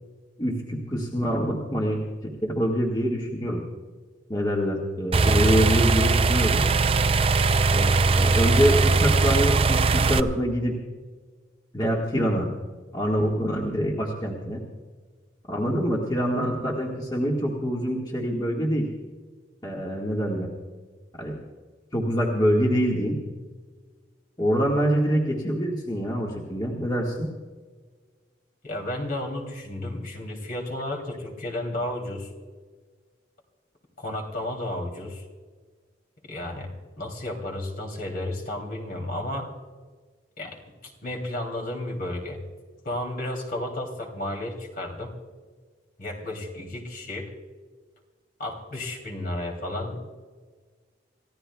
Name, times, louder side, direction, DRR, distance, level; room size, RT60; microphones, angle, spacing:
voice 1, 0.4-2.0 2.4-3.6 4.3-6.6 7.7-10.8 11.7-12.5 12.9-14.6 15.5-18.9 19.6-20.5 21.2-21.4 21.9-23.2 24.4-27.3, equal, 20° left, -2 dB, 1.7 m, -25 dB
sound 1, 5.1-10.2, right 3 dB, 30° right, 0.4 m, -20 dB
voice 2, 28.6-32.3 34.0-35.2 36.2-39.5 40.4-42.4 42.8-45.1 46.0-47.3 48.4-50.0, left 1 dB, 50° left, 2 dB, 2.9 m, -33 dB
28.5 x 15.0 x 2.3 m, 1.5 s
head